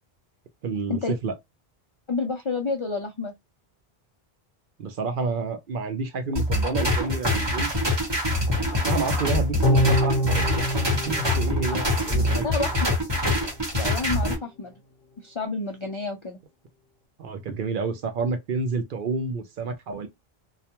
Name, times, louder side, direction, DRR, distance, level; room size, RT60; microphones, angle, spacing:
voice 1, 0.6-1.3 4.8-7.7 8.7-12.4 17.2-20.1, right 4 dB, 60° right, 0.7 m, -29 dB
voice 2, 2.1-3.3 12.4-12.7 13.7-14.7 15.2-16.4, left 4 dB, 55° left, 0.3 m, -29 dB
sound 1, 6.3-14.3, left 1 dB, 25° right, 1.0 m, -24 dB
sound 2, 9.6-13.0 13.3-13.4, equal, 75° left, 0.8 m, -26 dB
2.3 x 2.2 x 2.8 m
omnidirectional pair, 1.1 m